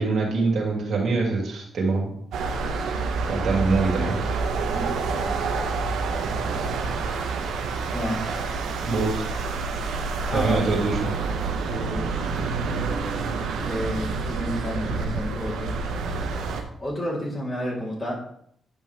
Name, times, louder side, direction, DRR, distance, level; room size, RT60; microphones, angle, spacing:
voice 1, 0.0-2.1 3.3-4.3 8.9-9.2 10.3-11.1, right 3 dB, 70° right, -1 dB, 2.5 m, -24 dB
sound 1, 2.3-16.6, right 4 dB, 85° right, 1.1 m, -28 dB
voice 2, 4.7-5.4 7.9-8.3 10.3-10.7 11.6-12.0 13.6-15.7 16.8-18.2, equal, 25° left, -4 dB, 3.6 m, -31 dB
9.7 x 5.4 x 3.5 m, 0.68 s
cardioid pair, 65°, 0 cm